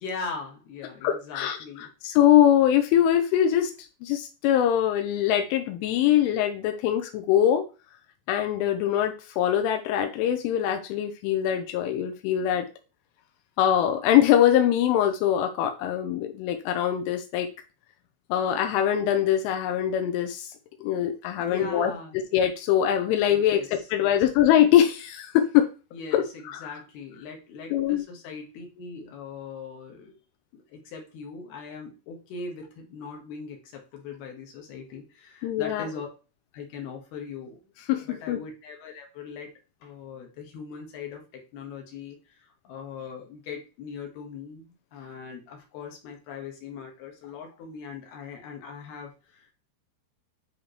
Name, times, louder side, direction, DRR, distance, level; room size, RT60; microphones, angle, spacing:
voice 1, 0.0-1.9 21.4-22.2 23.3-24.2 25.9-30.1 30.5-36.1 36.5-37.6 38.1-39.5 39.8-42.4 42.6-49.5, left 5 dB, 65° left, 2 dB, 2.8 m, -40 dB
voice 2, 1.0-3.7 4.0-7.7 8.3-12.7 13.6-17.5 18.3-20.5 20.8-25.7 26.1-26.7 27.7-28.0 35.4-35.9 37.9-38.4, left 10 dB, 80° left, 6 dB, 3.2 m, -23 dB
10.0 x 3.7 x 3.1 m, 0.32 s
omnidirectional pair, 5.7 m